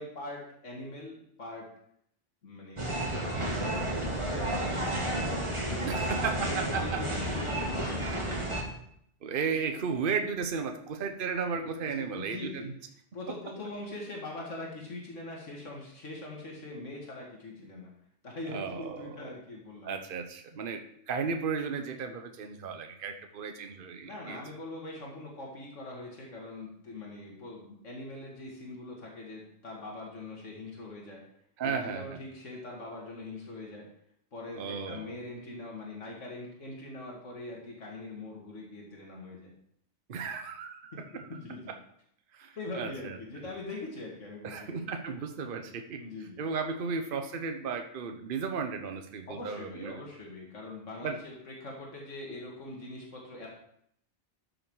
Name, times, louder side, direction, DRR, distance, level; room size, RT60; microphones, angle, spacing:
voice 1, 0.0-1.7 2.4-4.7 5.6-8.6 11.6-12.7 13.1-17.9 18.2-19.9 24.0-31.2 31.6-33.9 34.3-39.5 40.9-41.7 42.6-44.9 45.9-46.4 49.3-53.5, left 2 dB, 85° left, -2 dB, 2.4 m, -42 dB
sound 1, 2.8-8.6, right 1 dB, 25° right, 2.1 m, -31 dB
voice 2, 5.8-7.0 9.2-12.7 18.5-19.2 19.8-24.4 31.6-32.2 34.5-35.1 40.1-41.4 41.7-41.8 42.3-43.2 44.4-46.0 46.4-50.1 51.0-51.2, right 5 dB, 50° right, 6 dB, 1.0 m, -34 dB
13.0 x 6.4 x 4.8 m, 0.70 s
omnidirectional pair, 1.2 m